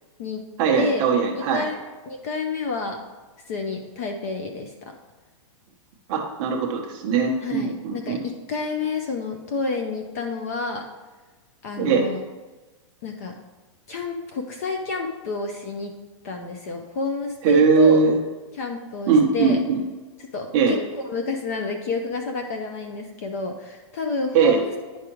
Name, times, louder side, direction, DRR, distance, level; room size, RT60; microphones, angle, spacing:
voice 1, 0.6-1.7 6.1-8.2 11.8-12.1 17.4-18.2 19.1-19.8 20.5-20.7 24.3-24.6, right 5 dB, 20° right, 0 dB, 0.8 m, -20 dB
voice 2, 1.3-1.8 2.1-3.0 3.5-4.7 7.4-10.8 11.6-12.2 13.0-13.3 13.9-15.9 16.2-18.0 18.6-19.6 20.3-25.0, left 4 dB, 30° left, 4 dB, 0.5 m, -29 dB
10.0 x 4.9 x 3.0 m, 1.2 s
supercardioid pair, 180°, 17 cm